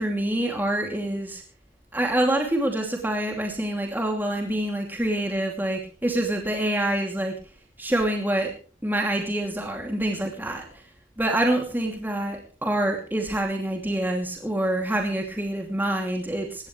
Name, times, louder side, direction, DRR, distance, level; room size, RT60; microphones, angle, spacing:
voice 1, 0.0-1.4 1.9-7.3 7.8-8.5 8.8-10.8 11.2-16.7, right 1 dB, 10° right, 2 dB, 2.7 m, -26 dB
20.5 x 17.0 x 3.3 m, 0.37 s
head